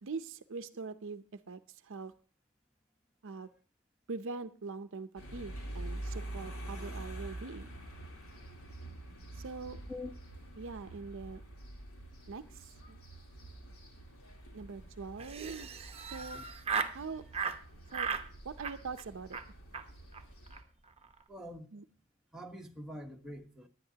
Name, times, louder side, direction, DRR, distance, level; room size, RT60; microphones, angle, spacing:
voice 1, 0.0-2.1 3.2-3.5 4.1-7.7 9.3-9.8 10.6-11.4 12.3-13.0 14.5-15.8 16.1-16.4 16.9-17.2 17.9-18.1 18.4-19.4 21.7-21.8, right 4 dB, 60° right, 12 dB, 0.6 m, -43 dB
sound 1, 5.2-20.6, right 1 dB, 75° left, 3.3 m, -46 dB
voice 2, 14.5-14.9 16.3-16.4 21.3-21.7 22.3-23.7, left 1 dB, 5° right, 1 dB, 1.1 m, -45 dB
Laughter, 15.2-17.0 17.3-17.6 17.9-18.3 18.6-19.0 19.3-19.5 19.7-19.8 20.1-20.2 20.5-20.6 20.9-21.2, right 6 dB, 30° right, 0.8 m, -36 dB
18.5 x 10.5 x 2.8 m, 0.41 s
head